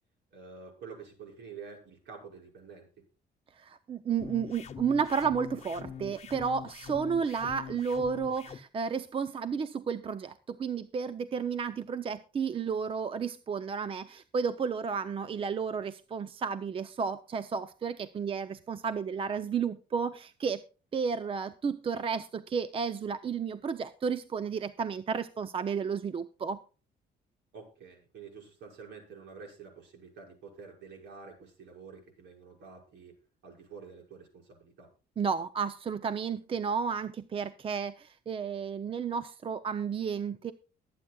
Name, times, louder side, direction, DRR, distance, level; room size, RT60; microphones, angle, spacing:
voice 1, 0.3-2.9 27.5-33.2 33.4-34.9, right 5 dB, 80° right, 1 dB, 6.1 m, -48 dB
voice 2, 3.6-20.6 20.9-26.6 35.2-40.5, right 6 dB, 30° right, 12 dB, 0.6 m, -32 dB
sound 1, 4.2-8.6, left 7 dB, 40° left, 1.0 m, -43 dB
22.5 x 8.8 x 2.3 m, 0.34 s
cardioid pair, 140°, 18 cm